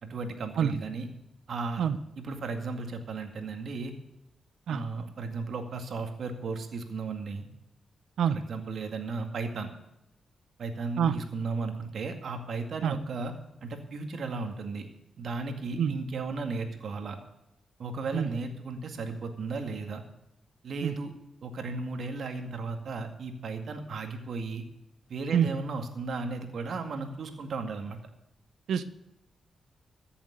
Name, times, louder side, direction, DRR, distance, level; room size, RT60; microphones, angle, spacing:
voice 1, 0.0-1.1 1.5-1.8 2.2-3.9 4.7-7.5 8.3-9.7 10.6-13.3 13.6-14.9 15.2-17.2 17.8-20.0 20.6-21.1 21.4-24.6 25.1-28.0, right 3 dB, 70° right, 5 dB, 2.1 m, -35 dB
voice 2, 0.6-0.8 1.8-2.0 4.7-4.8 8.2-8.4 11.0-11.1 12.8-12.9 15.8-15.9 18.1-18.3 20.8-20.9 25.3-25.5 28.7-28.8, right 8 dB, 85° right, 13 dB, 0.8 m, -25 dB
14.5 x 7.2 x 8.0 m, 0.87 s
cardioid pair, 70°, 0 cm